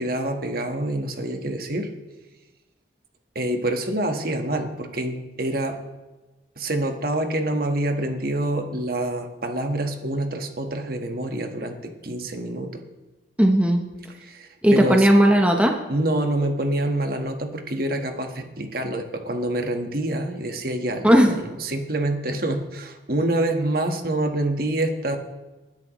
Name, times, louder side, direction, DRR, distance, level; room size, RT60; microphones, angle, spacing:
voice 1, 0.0-1.9 3.3-5.8 6.6-12.8 14.1-15.1 15.9-25.2, right 1 dB, 55° right, 5 dB, 1.5 m, -26 dB
voice 2, 13.4-13.8 14.6-15.8 21.0-21.3, equal, 5° right, 3 dB, 0.9 m, -16 dB
20.5 x 10.5 x 3.1 m, 1.1 s
head